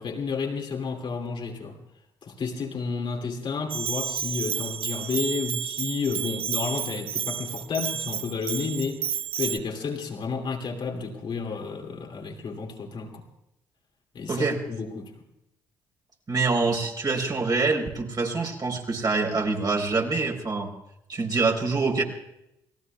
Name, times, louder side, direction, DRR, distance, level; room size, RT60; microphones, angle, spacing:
voice 1, 0.0-1.8 2.2-13.2 14.1-15.1, left 5 dB, 55° left, 2.6 m, -31 dB
Bell, 3.7-9.6, right 9 dB, 60° right, 0.7 m, -31 dB
voice 2, 16.3-20.7 21.1-22.0, right 3 dB, 40° right, 4.0 m, -25 dB
29.5 x 18.5 x 2.3 m
hypercardioid pair, 45°, 10 cm